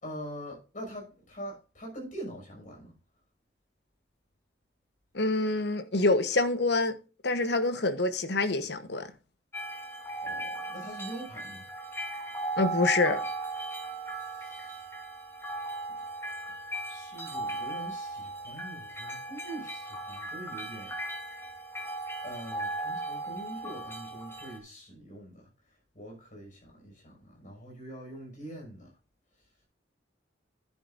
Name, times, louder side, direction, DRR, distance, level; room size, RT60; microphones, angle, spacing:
voice 1, 0.0-2.9 10.2-11.7 14.1-14.9 16.9-20.9 22.2-25.5 25.9-28.9, right 1 dB, 45° left, 5.9 m, -44 dB
voice 2, 5.1-7.0 7.2-9.1 12.6-13.2, left 2 dB, 65° left, 1.1 m, -26 dB
sound 1, 9.5-24.6, right 2 dB, 15° left, 2.4 m, -37 dB
11.0 x 9.9 x 2.6 m
head